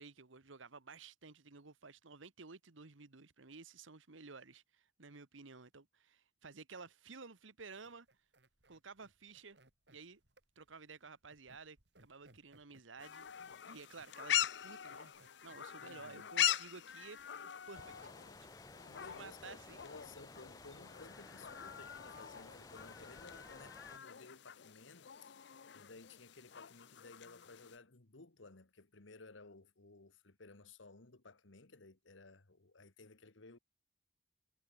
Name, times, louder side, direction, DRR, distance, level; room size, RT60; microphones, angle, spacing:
voice 1, 0.0-8.1 8.7-9.6 9.9-10.2 10.5-15.1 15.4-17.9 18.4-18.5 19.1-19.8, right 4 dB, 90° right, 1.4 m, -54 dB
sound 1, 7.7-23.9, right 2 dB, 65° right, 3.5 m, -70 dB
sound 2, 13.0-27.8, left 11 dB, 65° left, 0.6 m, -42 dB
voice 2, 15.8-16.3 18.9-33.6, left 3 dB, 80° left, 1.6 m, -57 dB
sound 3, 17.7-24.0, left 2 dB, 20° left, 1.0 m, -56 dB
head